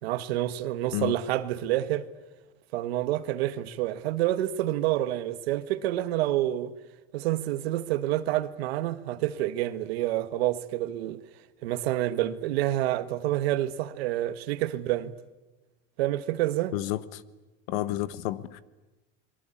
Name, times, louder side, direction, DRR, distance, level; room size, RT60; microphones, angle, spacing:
voice 1, 0.0-2.1 2.7-6.7 7.1-11.2 11.6-15.1 16.0-16.7, right 14 dB, 90° right, 1.5 m, -28 dB
voice 2, 16.7-17.2 17.7-18.6, left 15 dB, 75° left, 1.4 m, -30 dB
29.5 x 22.5 x 8.5 m
supercardioid pair, 135°, 30 cm